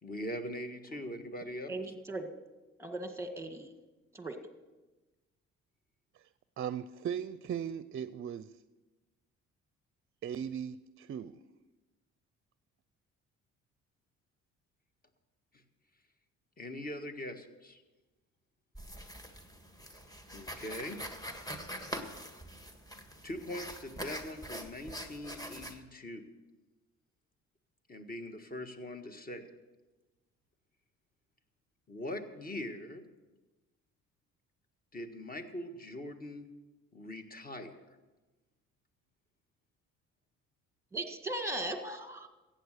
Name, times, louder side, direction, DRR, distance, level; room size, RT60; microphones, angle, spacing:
voice 1, 0.0-1.7 15.5-15.6 16.6-17.8 20.3-21.0 23.2-26.2 27.9-29.5 31.9-33.0 34.9-36.5 36.9-37.7, left 1 dB, 30° left, 7 dB, 1.6 m, -42 dB
voice 2, 1.7-2.3 2.8-3.7 4.1-4.4 40.9-42.3, right 2 dB, 10° right, 6 dB, 1.7 m, -38 dB
voice 3, 6.6-8.5 10.2-11.4, right 8 dB, 45° right, 15 dB, 0.5 m, -38 dB
sound 1, 18.7-25.8, equal, 10° left, 1.6 m, -44 dB
15.0 x 9.0 x 6.6 m, 1.2 s
cardioid pair, 90°, 30 cm